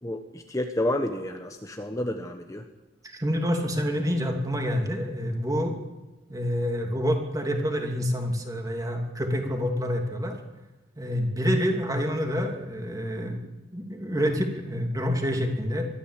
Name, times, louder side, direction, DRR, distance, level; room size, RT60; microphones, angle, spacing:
voice 1, 0.0-2.7, left 1 dB, 15° left, 5 dB, 1.1 m, -30 dB
voice 2, 3.0-5.8 6.3-10.4 11.0-13.4 13.7-15.9, equal, 20° right, 3 dB, 2.8 m, -27 dB
22.5 x 14.5 x 8.3 m, 1.1 s
head